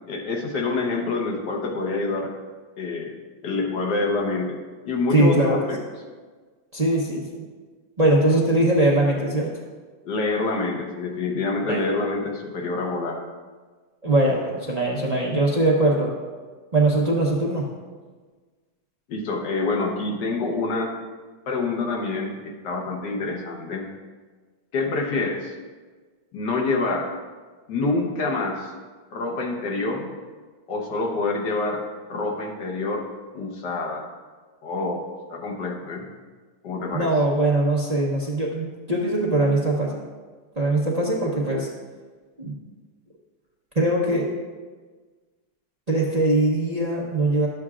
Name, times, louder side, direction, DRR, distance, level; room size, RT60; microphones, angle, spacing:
voice 1, 0.0-2.3 2.8-3.1 3.4-4.6 4.9-5.8 8.6-8.7 10.1-13.2 19.1-20.9 21.5-23.8 24.7-25.5 26.3-27.1 27.7-28.7 29.1-30.1 30.7-31.8 32.1-33.1 33.3-34.1 34.6-35.0 35.3-36.1 36.6-37.1, left 3 dB, 75° left, 1 dB, 1.6 m, -26 dB
voice 2, 5.1-5.6 6.7-7.3 8.0-9.5 11.7-11.8 14.0-16.1 16.7-17.7 36.9-40.0 40.6-41.7 42.4-42.5 43.7-44.3 45.9-47.5, right 2 dB, 30° right, -4 dB, 0.8 m, -21 dB
12.0 x 7.8 x 2.4 m, 1.4 s
omnidirectional pair, 1.9 m